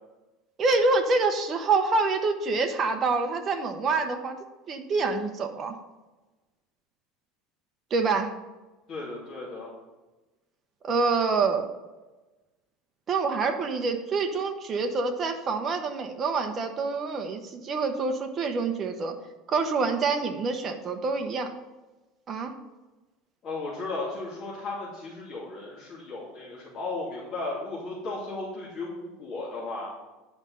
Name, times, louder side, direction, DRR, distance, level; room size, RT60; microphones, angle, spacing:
voice 1, 0.6-4.4 4.7-5.8 7.9-8.3 10.8-11.7 13.1-19.1 19.5-21.5 22.3-22.5, right 4 dB, 25° right, 5 dB, 0.9 m, -26 dB
voice 2, 8.9-9.7 23.4-29.9, left 3 dB, 35° left, -8 dB, 2.6 m, -35 dB
9.8 x 5.1 x 5.6 m, 1.1 s
cardioid pair, 165°, 0 cm